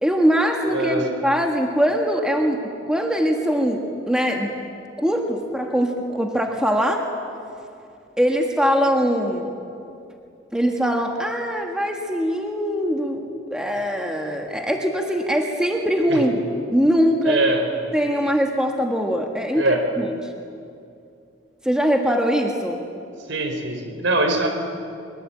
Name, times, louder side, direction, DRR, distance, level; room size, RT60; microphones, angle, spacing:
voice 1, 0.0-2.6 2.9-4.5 5.0-7.0 8.2-9.5 10.5-13.3 13.5-17.4 17.9-20.2 21.6-22.8, equal, 5° right, 2 dB, 1.6 m, -22 dB
voice 2, 0.7-1.1 16.1-16.2 17.2-17.6 19.6-19.9 23.3-24.5, right 2 dB, 70° right, 5 dB, 4.4 m, -22 dB
23.0 x 22.5 x 8.8 m, 2.5 s
head